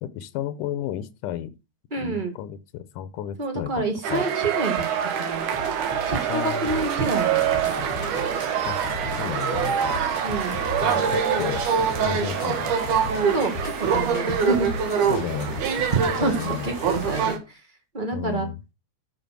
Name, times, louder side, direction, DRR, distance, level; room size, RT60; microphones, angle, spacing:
voice 1, 0.0-1.5 2.0-3.7 4.1-4.3 6.3-6.8 8.6-8.8 9.1-9.8 10.8-11.6 12.0-12.7 15.1-15.9 16.2-16.7 18.1-18.6, left 10 dB, 90° left, 2.3 m, -32 dB
voice 2, 1.9-2.3 3.4-5.5 6.1-7.4 7.6-8.1 10.2-10.6 13.3-14.7 16.2-17.6 17.9-18.5, right 2 dB, 30° right, 0.9 m, -28 dB
sound 1, 4.0-17.4, right 7 dB, 75° right, 2.7 m, -25 dB
sound 2, 5.3-17.4, left 3 dB, 60° left, 2.6 m, -36 dB
12.0 x 4.1 x 6.0 m
omnidirectional pair, 3.6 m